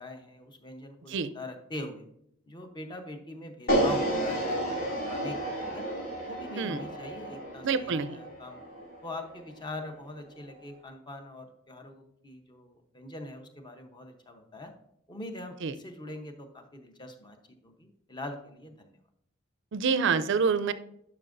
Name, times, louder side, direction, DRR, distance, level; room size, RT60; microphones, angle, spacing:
voice 1, 0.0-2.0 2.5-5.9 6.2-8.6 9.0-14.7 15.1-19.0, left 1 dB, 25° left, 5 dB, 0.9 m, -43 dB
sound 1, 3.7-9.8, right 1 dB, 75° left, 2.6 m, -31 dB
voice 2, 7.6-8.2 15.6-15.7 19.7-20.7, right 5 dB, 65° right, 14 dB, 0.5 m, -27 dB
11.0 x 5.9 x 2.6 m, 0.75 s
head